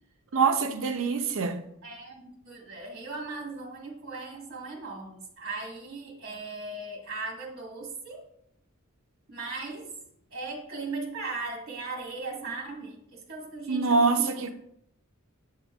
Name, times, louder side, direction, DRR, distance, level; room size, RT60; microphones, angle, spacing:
voice 1, 0.3-1.6 13.7-14.5, right 4 dB, 65° right, 0.6 m, -24 dB
voice 2, 1.8-8.2 9.3-9.9 10.3-14.5, right 3 dB, 50° right, 1.7 m, -38 dB
7.9 x 6.6 x 2.4 m
head